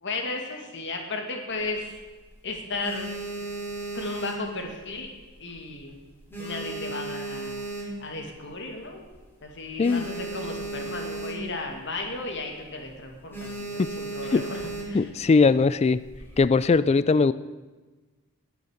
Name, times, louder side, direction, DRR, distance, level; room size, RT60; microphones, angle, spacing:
voice 1, 0.0-2.0 2.4-3.1 3.9-5.1 5.4-6.0 6.4-7.6 8.0-9.1 9.4-15.1, left 2 dB, 55° left, 3 dB, 2.2 m, -34 dB
sound 1, 1.5-2.2 2.6-5.1 5.4-5.8 6.1-8.3 8.8-8.9 9.1-9.2 9.5-11.7 12.0-12.3 12.6-12.9 13.3-15.1 15.9-16.4, right 2 dB, 10° left, 3.3 m, -35 dB
voice 2, 14.9-16.0 16.4-17.3, left 4 dB, 30° left, 16 dB, 0.3 m, -20 dB
19.5 x 7.0 x 6.5 m, 1.3 s
head